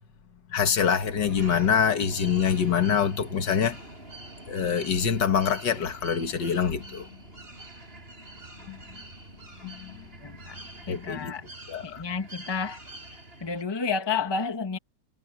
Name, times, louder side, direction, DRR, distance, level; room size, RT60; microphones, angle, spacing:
voice 1, 0.5-3.8 4.5-7.1 8.7-8.8 9.6-9.9 10.9-11.3 11.7-12.0, left 7 dB, 70° left, 2.1 m, -25 dB
sound 1, 1.1-13.6, right 1 dB, 30° right, 6.3 m, -45 dB
voice 2, 10.2-10.6 10.9-11.4 11.8-12.8 13.4-14.8, left 5 dB, 15° left, 1.3 m, -30 dB
omnidirectional pair, 2.0 m